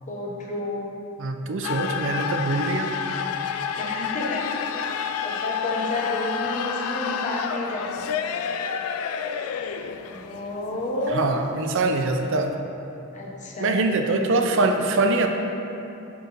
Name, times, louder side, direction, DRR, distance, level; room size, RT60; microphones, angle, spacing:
voice 1, 0.0-0.9 1.8-2.4 3.7-8.4 10.1-11.5 13.1-13.8, left 2 dB, 35° left, -2 dB, 0.8 m, -31 dB
voice 2, 1.2-2.9 11.1-12.5 13.6-15.3, right 3 dB, 60° right, 5 dB, 0.5 m, -23 dB
sound 1, 1.6-12.5, left 7 dB, 80° left, 0.3 m, -30 dB
8.0 x 5.9 x 2.6 m, 2.8 s
head